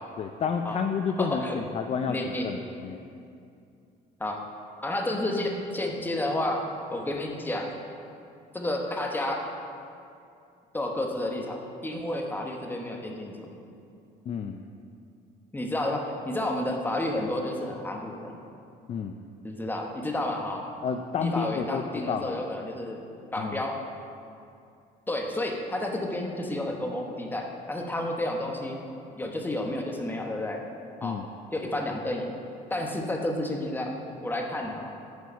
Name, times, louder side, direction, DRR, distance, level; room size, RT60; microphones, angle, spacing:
voice 1, 0.2-3.0 14.3-14.6 18.9-19.2 20.8-22.4 23.4-23.6 31.0-31.3, left 6 dB, 40° left, 6 dB, 0.4 m, -30 dB
voice 2, 1.2-1.6 2.1-2.5 4.2-4.4 4.8-6.6 6.9-7.7 8.5-9.4 10.7-13.5 15.5-18.4 19.4-20.6 21.2-23.0 23.3-23.8 25.1-28.8 29.2-30.6 31.0-31.2 31.5-32.3 32.7-34.9, left 1 dB, 10° left, 1 dB, 1.0 m, -31 dB
9.3 x 4.7 x 5.6 m, 2.5 s
cardioid pair, 110°, 17 cm